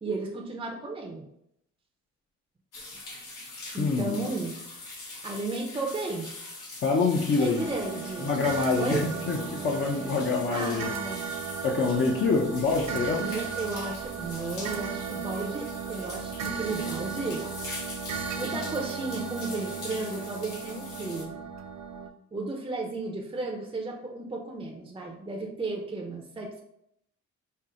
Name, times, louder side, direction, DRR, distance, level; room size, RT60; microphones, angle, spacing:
voice 1, 0.0-1.3 3.7-4.5 5.2-6.3 7.4-8.3 8.8-9.1 10.5-11.4 13.2-17.5 18.1-21.4 22.3-26.6, right 3 dB, 15° right, 1 dB, 0.6 m, -34 dB
sound 1, 2.7-21.2, left 2 dB, 90° left, 1.5 m, -43 dB
voice 2, 3.8-4.3 6.8-7.6 8.2-10.9 11.6-13.2, left 4 dB, 40° left, -2 dB, 0.6 m, -26 dB
sound 2, 7.6-22.1, right 6 dB, 65° right, 0.5 m, -36 dB
4.4 x 2.1 x 3.7 m, 0.75 s
cardioid pair, 90°, 30 cm